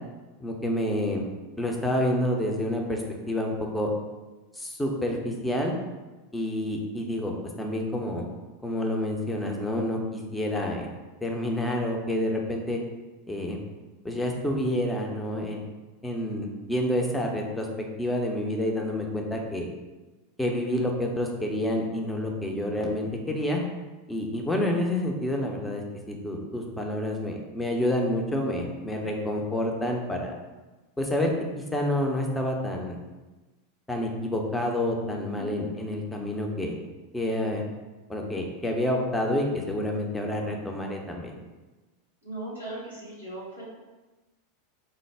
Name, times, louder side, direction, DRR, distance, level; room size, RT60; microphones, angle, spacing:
voice 1, 0.4-1.2 1.6-3.9 4.6-5.7 6.3-8.3 8.6-10.9 11.2-12.8 13.3-13.6 14.0-15.7 16.0-17.7 18.0-19.7 20.4-23.6 24.1-30.3 31.0-31.3 31.7-33.0 33.9-36.7 37.1-37.6 38.1-41.3, left 1 dB, 10° left, 1 dB, 0.5 m, -28 dB
voice 2, 35.3-35.7 42.2-43.6, right 1 dB, 90° left, -9 dB, 1.4 m, -38 dB
3.2 x 2.0 x 3.3 m, 1.2 s
figure-of-eight pair, 85°, 0 cm